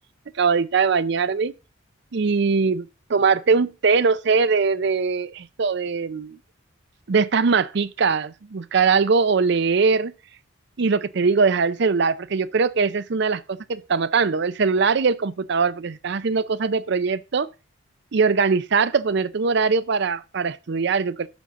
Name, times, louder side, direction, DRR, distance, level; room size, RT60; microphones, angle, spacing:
voice 1, 0.4-1.5 2.1-6.4 7.1-10.1 10.8-17.5 18.1-21.3, right 5 dB, 55° right, 0.5 m, -21 dB
11.5 x 6.9 x 3.7 m
head